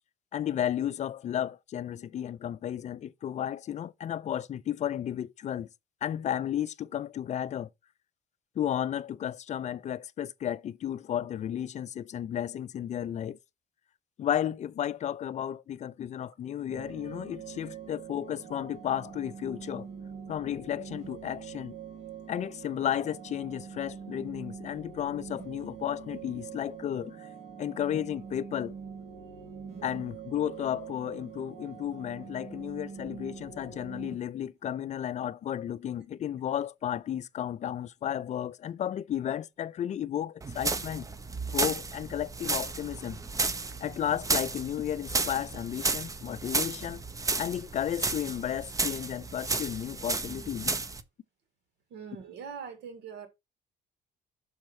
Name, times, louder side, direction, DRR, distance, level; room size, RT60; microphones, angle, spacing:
voice 1, 0.3-5.7 6.0-7.7 8.6-13.4 14.2-19.9 20.3-21.8 22.3-27.3 27.6-28.7 29.8-41.1 41.5-43.2 43.8-47.0 47.4-50.7, left 10 dB, 45° left, 0.5 m, -33 dB
sound 1, 16.7-34.1, right 7 dB, 45° right, 3.2 m, -44 dB
sound 2, 40.4-51.0, right 3 dB, 20° right, 0.7 m, -33 dB
voice 2, 51.9-53.3, right 6 dB, 80° right, 1.9 m, -42 dB
6.4 x 4.4 x 5.3 m
cardioid pair, 110°, 17 cm